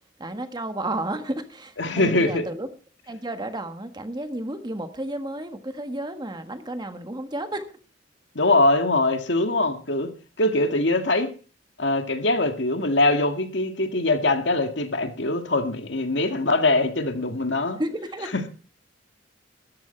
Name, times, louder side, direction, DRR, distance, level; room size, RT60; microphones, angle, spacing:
voice 1, 0.2-2.7 3.1-7.6 17.7-18.3, right 1 dB, 25° right, 8 dB, 1.5 m, -32 dB
voice 2, 1.8-2.4 8.4-10.1 10.4-11.3 11.8-17.8 18.3-18.5, left 2 dB, 70° left, 6 dB, 2.0 m, -22 dB
13.5 x 12.5 x 4.5 m, 0.37 s
head